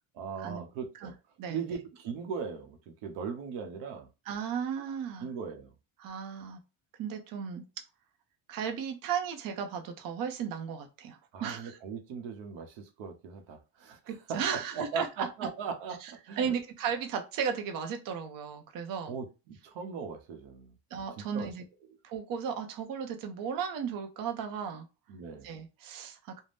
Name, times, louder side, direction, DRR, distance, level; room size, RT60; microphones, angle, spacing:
voice 1, 0.1-1.2 1.5-4.1 5.2-5.7 11.3-16.6 19.1-20.7 21.2-21.5 25.1-25.5, right 6 dB, 85° right, 0.8 m, -39 dB
voice 2, 4.3-5.3 6.0-6.6 7.0-7.6 8.5-11.8 14.1-15.3 16.0-19.1 20.9-21.6 22.0-24.9 25.4-26.4, right 7 dB, 50° right, 0.6 m, -35 dB
2.5 x 2.1 x 3.3 m
cardioid pair, 130°, 43 cm